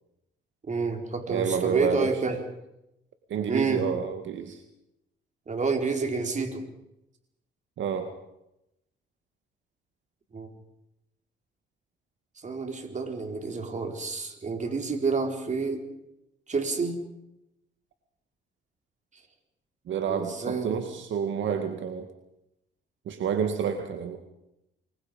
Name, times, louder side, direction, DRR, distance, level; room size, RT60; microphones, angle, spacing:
voice 1, 0.7-2.4 3.5-3.8 5.5-6.6 10.3-10.5 12.4-15.8 16.5-17.0 20.1-20.8, right 4 dB, 35° right, 4 dB, 4.6 m, -29 dB
voice 2, 1.3-2.4 3.3-4.5 7.8-8.1 19.9-22.1 23.1-24.2, right 7 dB, 70° right, 6 dB, 2.1 m, -29 dB
29.0 x 22.5 x 5.3 m, 0.85 s
cardioid pair, 90°, 20 cm